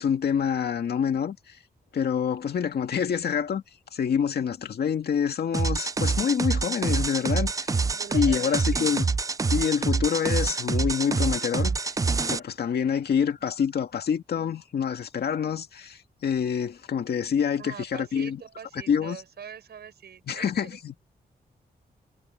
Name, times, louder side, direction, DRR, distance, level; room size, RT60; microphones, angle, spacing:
voice 1, 0.0-1.6 1.9-3.6 3.9-7.8 8.1-9.1 9.5-11.9 12.2-18.4 18.9-19.2 20.3-21.0, left 7 dB, 75° left, 2.1 m, -27 dB
sound 1, 5.5-12.4, right 4 dB, 20° right, 0.4 m, -26 dB
voice 2, 7.9-8.9 17.6-20.8, right 8 dB, 85° right, 5.8 m, -43 dB
wide cardioid pair, 175°, 17 cm